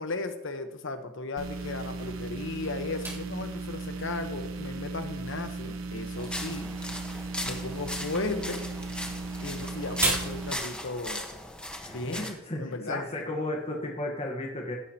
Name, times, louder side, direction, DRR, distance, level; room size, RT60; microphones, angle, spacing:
voice 1, 0.0-6.7 7.4-8.6 9.4-11.2 11.9-12.3 12.6-13.0, left 3 dB, 65° left, 7 dB, 1.1 m, -35 dB
sound 1, 1.4-10.5, right 3 dB, 80° right, 1.1 m, -37 dB
sound 2, 3.0-13.8, right 1 dB, 15° right, 3.6 m, -40 dB
sound 3, 6.2-12.3, left 1 dB, 5° left, 1.3 m, -38 dB
voice 2, 11.8-14.7, left 1 dB, 30° left, 0 dB, 1.3 m, -34 dB
16.5 x 9.7 x 3.0 m, 0.96 s
head